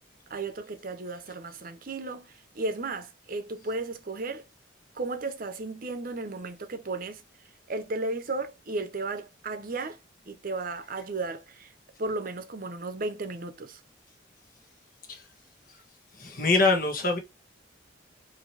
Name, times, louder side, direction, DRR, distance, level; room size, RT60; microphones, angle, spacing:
voice 1, 0.3-4.4 4.9-7.2 7.7-10.0 10.3-11.7 12.0-13.8, right 3 dB, 50° right, 0.8 m, -34 dB
voice 2, 16.2-17.2, left 3 dB, 45° left, 1.5 m, -24 dB
5.0 x 2.9 x 3.3 m
head